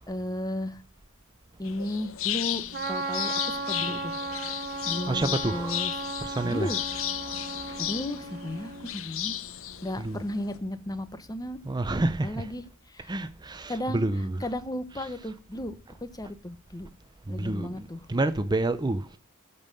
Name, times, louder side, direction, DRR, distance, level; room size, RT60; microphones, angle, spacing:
voice 1, 0.1-0.8 1.6-4.2 4.8-6.0 6.4-6.8 7.8-9.4 9.8-11.6 12.2-13.1 13.7-14.1 14.4-16.9 17.3-18.1, left 1 dB, 20° left, 1.0 m, -34 dB
sound 1, 1.6-10.6, left 12 dB, 65° left, 0.9 m, -34 dB
Trumpet, 2.7-8.9, right 3 dB, 45° right, 1.0 m, -36 dB
voice 2, 5.1-5.8 6.2-6.7 10.0-10.2 11.7-12.5 13.1-14.4 15.0-15.1 17.3-19.1, right 2 dB, 20° right, 0.5 m, -29 dB
14.0 x 5.5 x 6.5 m
head